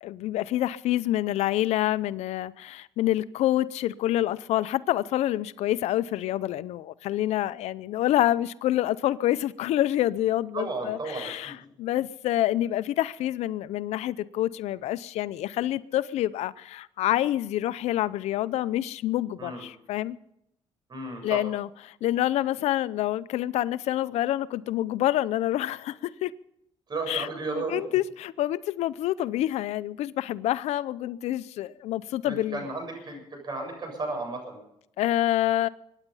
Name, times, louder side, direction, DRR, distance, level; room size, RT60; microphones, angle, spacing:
voice 1, 0.0-20.2 21.2-26.3 27.1-27.3 27.5-32.6 35.0-35.7, left 13 dB, 80° left, 0.6 m, -27 dB
voice 2, 10.5-11.6 19.4-19.6 20.9-21.4 26.9-27.8 32.2-34.6, right 3 dB, 40° right, 7.4 m, -34 dB
24.0 x 10.0 x 5.5 m
cardioid pair, 95°, 11 cm